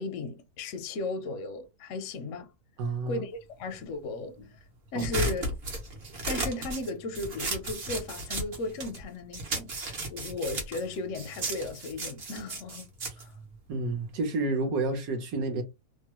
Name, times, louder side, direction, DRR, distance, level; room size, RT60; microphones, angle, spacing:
voice 1, 0.0-2.5 3.1-4.6 4.9-5.4 6.3-12.9 13.2-13.3, left 2 dB, 65° left, 0.8 m, -35 dB
voice 2, 2.8-3.2 4.9-5.3 13.7-15.6, right 2 dB, 65° right, 1.2 m, -30 dB
sound 1, 5.0-9.0 9.3-14.1, right 2 dB, 45° right, 1.0 m, -35 dB
3.0 x 2.2 x 2.8 m
omnidirectional pair, 1.8 m